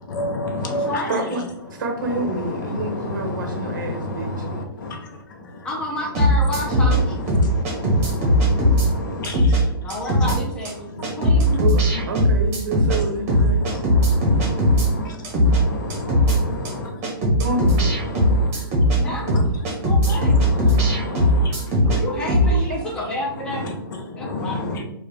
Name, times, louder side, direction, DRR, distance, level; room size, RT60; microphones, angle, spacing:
voice 1, 0.1-1.0 2.0-5.7 7.1-9.8 11.0-11.1 11.4-11.6 11.9-12.1 13.3-17.1 17.5-19.4 20.0-22.0 23.5-23.6 24.1-24.8, left 2 dB, 50° left, 2 dB, 0.9 m, -30 dB
voice 2, 0.6-1.5 5.4-7.1 9.8-11.6 15.6-15.9 18.9-19.6 19.8-20.4 22.0-23.7 24.1-24.6, left 1 dB, 5° left, -3 dB, 0.7 m, -30 dB
voice 3, 1.1-1.4 1.8-4.5 11.6-11.8 12.1-13.6 17.4-17.9 22.5-22.8, right 2 dB, 55° right, 4 dB, 0.8 m, -28 dB
sound 1, 6.2-7.0 7.3-8.9 9.2-9.6 9.9-10.4 10.7-10.8 11.0-13.0 13.3-14.9 15.2-15.6 15.9-16.4 16.7-16.8 17.0-19.0 19.3-22.0 22.3-22.5, left 1 dB, 20° right, 1.0 m, -18 dB
4.5 x 2.4 x 3.3 m, 0.82 s
hypercardioid pair, 165°, 13 cm